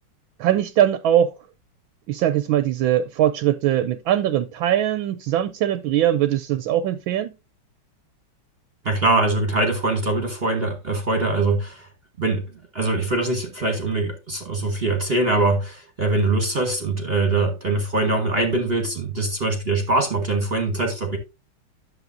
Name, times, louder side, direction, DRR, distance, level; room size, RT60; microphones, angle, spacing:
voice 1, 0.4-1.3 2.1-7.3, right 11 dB, 75° right, 1.3 m, -21 dB
voice 2, 8.8-11.9 12.2-12.4 12.7-21.2, right 2 dB, 35° right, 1.3 m, -22 dB
11.0 x 7.4 x 2.6 m
omnidirectional pair, 2.3 m